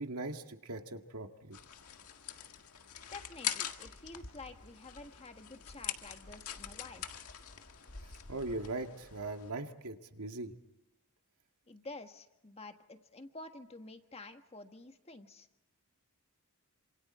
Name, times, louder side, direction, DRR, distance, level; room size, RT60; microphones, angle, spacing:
voice 1, 0.0-1.6 8.0-10.5, right 2 dB, 85° right, 5 dB, 2.0 m, -40 dB
sound 1, 1.5-9.5, left 9 dB, 85° left, 1.8 m, -44 dB
voice 2, 3.1-7.1 11.7-15.5, left 2 dB, 30° left, 6 dB, 1.6 m, -49 dB
28.0 x 27.0 x 4.4 m, 0.95 s
head